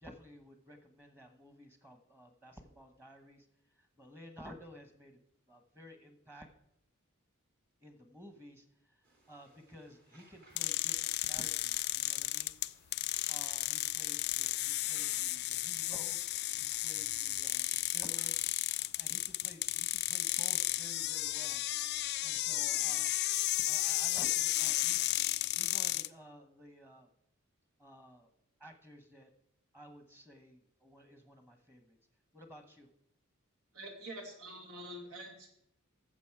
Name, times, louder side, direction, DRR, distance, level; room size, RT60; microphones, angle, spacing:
voice 1, 0.0-3.5 3.7-6.5 7.8-9.0 9.3-12.5 13.3-21.6 22.2-23.1 23.6-25.1 25.6-27.1 27.8-28.3 28.6-29.3 29.7-32.0 32.3-32.9, equal, 10° right, 6 dB, 1.1 m, -54 dB
sound 1, 9.0-23.0, right 2 dB, 45° right, 2.3 m, -64 dB
sound 2, 10.6-26.1, left 16 dB, 50° left, 0.3 m, -33 dB
voice 2, 33.7-35.5, right 1 dB, 85° right, 2 dB, 2.6 m, -46 dB
14.5 x 7.0 x 4.7 m, 0.78 s
head